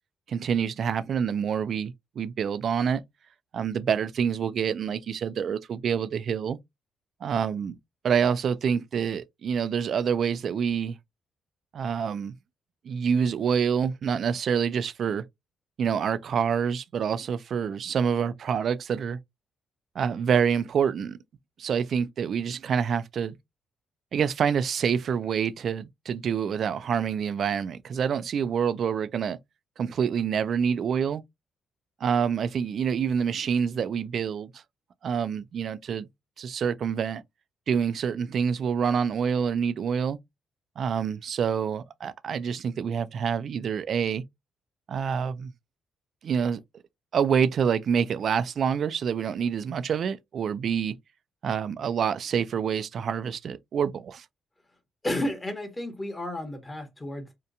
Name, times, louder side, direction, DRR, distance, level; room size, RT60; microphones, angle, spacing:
voice 1, 0.3-3.0 3.5-6.6 7.2-7.8 8.0-11.0 11.7-12.3 12.8-15.2 15.8-19.2 20.0-21.2 21.6-23.4 24.1-29.4 29.8-31.2 32.0-34.5 35.0-36.1 36.4-37.2 37.7-40.2 40.8-44.2 44.9-45.5 46.2-46.6 47.1-50.9 51.4-54.2, right 7 dB, 60° right, 0.3 m, -27 dB
voice 2, 55.0-57.3, left 1 dB, 20° left, 0.9 m, -32 dB
2.8 x 2.2 x 2.5 m
cardioid pair, 90°, 0 cm